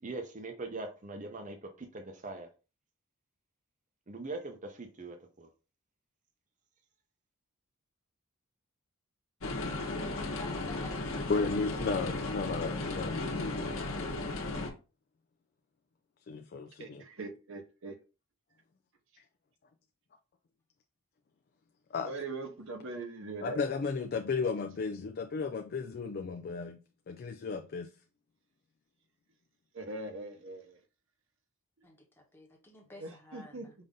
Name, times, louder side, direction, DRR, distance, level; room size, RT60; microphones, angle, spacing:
voice 1, 0.0-2.5 4.1-5.5, right 2 dB, 35° right, 0.7 m, -42 dB
sound 1, 9.4-14.7, left 2 dB, 65° left, 1.1 m, -35 dB
voice 2, 10.4-12.1 31.8-33.7, left 1 dB, 10° left, 1.0 m, -52 dB
voice 3, 11.3-14.3 16.3-17.0 21.9-22.1 23.4-26.8 27.1-27.9, left 4 dB, 45° left, 0.3 m, -34 dB
voice 4, 16.8-17.9 22.0-23.6 29.7-30.8 33.0-33.7, right 2 dB, 60° right, 0.9 m, -41 dB
5.3 x 2.6 x 3.6 m
head